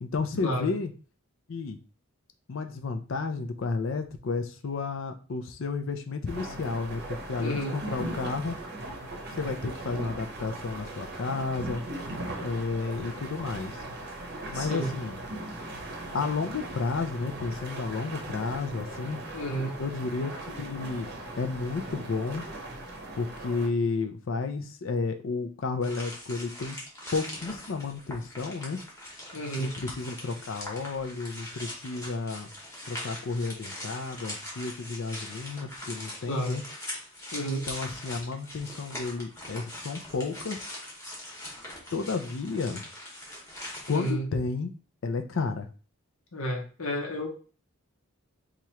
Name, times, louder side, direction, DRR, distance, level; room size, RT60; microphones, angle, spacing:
voice 1, 0.0-0.9 1.5-1.8 2.5-8.5 9.3-11.8 12.4-13.8 14.5-15.2 16.1-19.2 19.8-21.1 21.4-22.4 23.2-26.8 27.1-28.8 29.6-32.5 32.9-36.6 37.7-40.6 41.9-42.8 43.9-44.7 45.0-45.7, left 4 dB, 60° left, 7 dB, 0.5 m, -32 dB
sound 1, 6.3-23.7, right 1 dB, 50° right, 0.7 m, -39 dB
voice 2, 7.4-7.8 14.5-14.9 19.3-19.8 29.3-29.7 36.3-36.6 37.3-37.7 43.9-44.3 46.3-47.3, right 1 dB, 75° left, 1 dB, 1.0 m, -31 dB
sound 2, 25.8-44.1, left 1 dB, 15° left, 1.0 m, -41 dB
2.9 x 2.4 x 4.3 m, 0.37 s
head